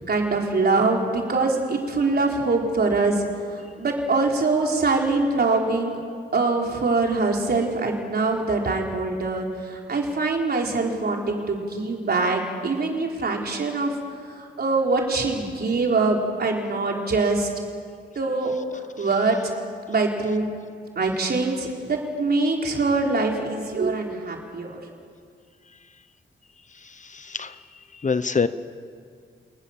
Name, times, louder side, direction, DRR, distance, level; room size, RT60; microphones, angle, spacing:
voice 1, 0.1-3.3 3.8-6.0 6.3-13.9 14.6-17.5 18.2-18.5 19.0-19.5 19.9-20.5 21.0-24.8, right 3 dB, 55° right, 0 dB, 4.3 m, -23 dB
voice 2, 26.8-27.6 27.9-28.5, left 5 dB, 40° left, 13 dB, 0.9 m, -25 dB
28.0 x 19.5 x 7.4 m, 2.1 s
wide cardioid pair, 95°, 19 cm